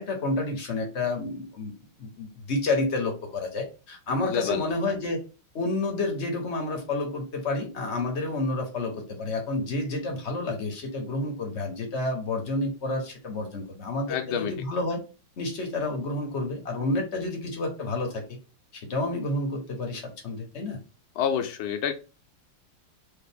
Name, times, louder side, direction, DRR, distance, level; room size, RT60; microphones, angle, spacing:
voice 1, 0.0-5.2 5.5-15.0 15.4-18.4 18.7-20.8, left 2 dB, 45° left, 2 dB, 0.9 m, -30 dB
voice 2, 4.3-4.7 14.1-14.5 21.2-21.9, left 8 dB, 75° left, 7 dB, 1.4 m, -28 dB
4.9 x 2.5 x 3.4 m, 0.32 s
omnidirectional pair, 2.4 m